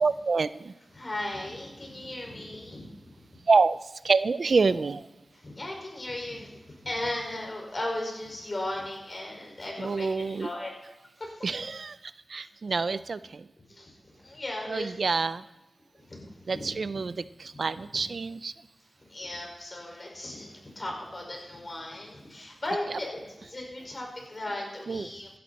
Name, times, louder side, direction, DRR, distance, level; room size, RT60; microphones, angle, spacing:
voice 1, 0.0-0.7 3.5-5.1 9.8-10.5 11.4-12.0 12.3-13.4 14.7-15.4 16.5-18.5 24.9-25.1, right 4 dB, 75° right, 15 dB, 0.4 m, -27 dB
voice 2, 0.9-3.2 5.3-10.7 11.2-11.6 13.7-15.0 15.9-16.7 17.9-18.1 19.0-25.3, left 1 dB, 45° left, 0 dB, 5.2 m, -37 dB
15.5 x 12.0 x 4.2 m, 0.99 s
cardioid pair, 55°, 0 cm